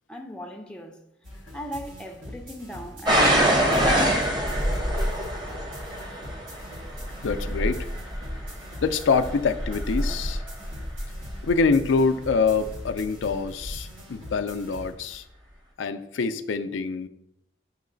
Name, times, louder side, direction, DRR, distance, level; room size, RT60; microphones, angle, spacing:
voice 1, 0.1-1.0 1.5-3.8 4.3-4.4 6.1-6.2 7.1-7.2 10.6-10.7, equal, 5° left, 0.5 m, -39 dB
sound 1, 1.2-14.9, left 1 dB, 90° right, 2.2 m, -43 dB
sound 2, 3.1-11.9 12.6-13.0 13.6-13.7, equal, 20° right, 0.9 m, -26 dB
voice 2, 7.2-7.9 8.8-10.4 11.4-15.2 15.8-17.1, left 4 dB, 85° left, 0.4 m, -25 dB
8.3 x 3.1 x 3.8 m
head